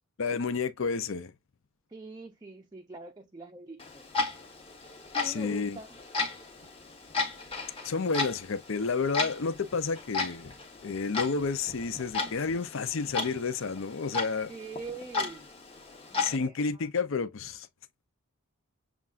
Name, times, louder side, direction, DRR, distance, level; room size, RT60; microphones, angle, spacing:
voice 1, 0.2-1.3 5.2-5.8 7.8-10.5 10.8-14.5 16.2-17.7, left 4 dB, 60° left, 0.5 m, -30 dB
voice 2, 1.9-4.1 5.1-6.0 14.5-15.5 16.1-16.9, right 3 dB, 20° right, 0.5 m, -44 dB
Clock, 3.8-16.4, left 4 dB, 25° left, 1.2 m, -35 dB
7.2 x 2.4 x 2.4 m
head